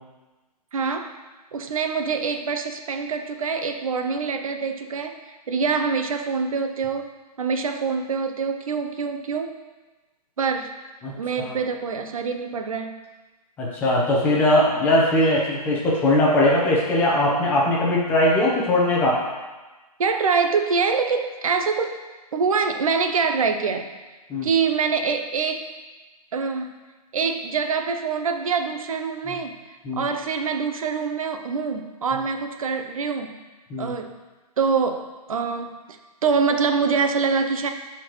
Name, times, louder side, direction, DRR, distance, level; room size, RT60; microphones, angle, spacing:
voice 1, 0.7-1.1 1.5-5.2 5.5-7.1 7.4-9.5 10.4-10.7 11.2-13.0 20.0-21.9 22.3-23.9 24.4-25.7 26.3-26.7 27.1-33.4 33.8-34.1 34.6-35.0 35.3-35.7 36.2-37.7, right 5 dB, 55° right, 6 dB, 0.8 m, -25 dB
voice 2, 13.6-19.2 24.3-24.5 29.3-29.4 29.8-30.0 33.7-33.9, left 1 dB, 10° left, -4 dB, 0.9 m, -20 dB
12.0 x 4.4 x 3.1 m, 1.2 s
hypercardioid pair, 165°, 21 cm